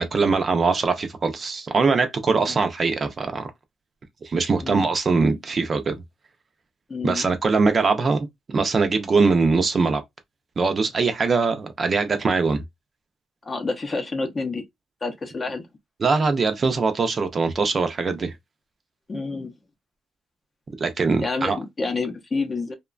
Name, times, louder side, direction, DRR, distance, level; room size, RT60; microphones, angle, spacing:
voice 1, 0.0-3.5 4.2-6.0 7.0-10.0 10.6-12.6 16.0-18.3 20.8-21.6, right 4 dB, 35° right, 0.5 m, -22 dB
voice 2, 6.9-7.3 13.4-14.6 15.0-15.7 19.1-19.5 21.2-22.7, left 3 dB, 25° left, 0.6 m, -28 dB
2.8 x 2.2 x 2.4 m
cardioid pair, 135°, 0 cm